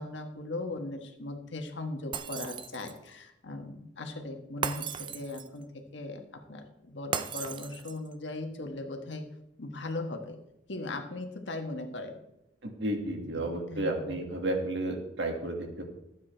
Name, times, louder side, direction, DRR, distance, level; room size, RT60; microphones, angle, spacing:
voice 1, 0.0-6.2 6.5-9.2 9.6-10.4 10.7-12.2 13.2-14.2, left 2 dB, 75° left, 4 dB, 1.4 m, -38 dB
Shatter, 2.1-3.1 4.6-5.6 7.1-8.1, right 6 dB, 25° right, 0.4 m, -36 dB
voice 2, 12.6-15.9, right 1 dB, 70° right, 3 dB, 1.9 m, -32 dB
12.5 x 8.4 x 4.4 m, 0.86 s
head